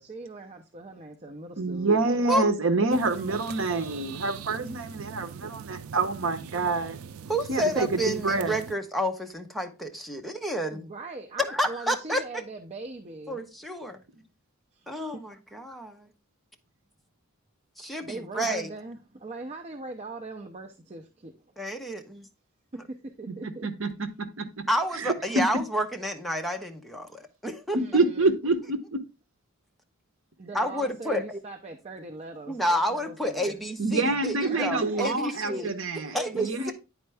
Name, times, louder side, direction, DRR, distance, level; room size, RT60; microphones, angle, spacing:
voice 1, 0.0-2.0 3.1-3.4 10.7-13.4 13.9-14.0 14.7-15.2 18.0-21.5 22.7-23.7 27.8-28.3 30.4-33.6 34.4-35.7 36.1-36.7, right 2 dB, 30° right, 0.6 m, -41 dB
voice 2, 1.6-7.0 7.5-8.6 23.6-23.9 24.4-24.6 25.0-25.1 27.7-29.0 33.8-36.7, right 3 dB, 65° right, 0.9 m, -27 dB
sound 1, 2.9-8.7, right 7 dB, 90° right, 0.4 m, -42 dB
voice 3, 7.3-10.8 11.5-12.2 13.3-14.0 14.9-16.1 17.8-18.7 21.6-22.3 24.7-27.8 30.5-31.4 32.5-35.7 36.1-36.7, equal, ahead, 0.7 m, -30 dB
9.4 x 4.4 x 3.4 m
head